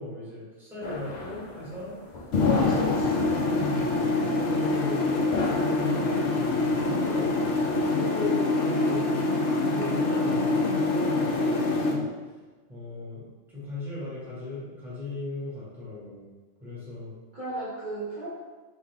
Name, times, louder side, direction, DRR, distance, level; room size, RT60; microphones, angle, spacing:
voice 1, 0.0-1.9 3.6-5.2 5.6-9.1 9.5-12.1 12.7-16.2 16.6-17.1, left 2 dB, ahead, -9 dB, 1.3 m, -37 dB
sound 1, 0.8-7.8, left 4 dB, 50° left, 0.5 m, -32 dB
sound 2, 2.3-11.9, left 2 dB, 65° left, 0.9 m, -26 dB
voice 2, 2.4-3.4 17.3-18.3, equal, 40° right, -10 dB, 1.0 m, -33 dB
3.6 x 3.4 x 3.5 m, 1.3 s
omnidirectional pair, 1.4 m